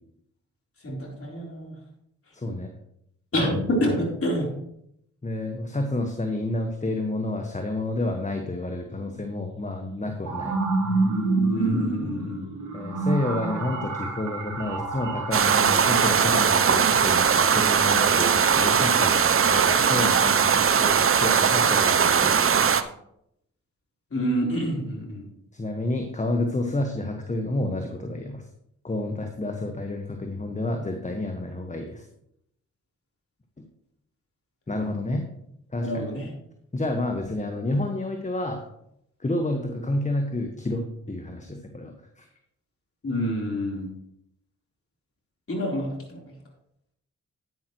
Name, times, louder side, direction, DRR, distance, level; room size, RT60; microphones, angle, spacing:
voice 1, 0.8-1.8 3.3-4.5 11.5-12.5 24.1-25.3 35.8-36.3 43.0-43.9 45.5-46.2, equal, 45° left, -1 dB, 4.1 m, -27 dB
voice 2, 2.3-2.7 5.2-10.5 12.7-22.6 25.5-28.4 28.8-32.0 34.7-35.2 35.7-36.0 36.7-38.6 39.2-42.3, left 2 dB, 20° left, 4 dB, 1.5 m, -29 dB
sound 1, 9.0-9.1 9.8-18.4, right 3 dB, 60° right, 3.4 m, -29 dB
sound 2, 15.3-22.8, right 7 dB, 40° right, 0.8 m, -20 dB
11.0 x 9.5 x 3.2 m, 0.75 s
supercardioid pair, 50°, 32 cm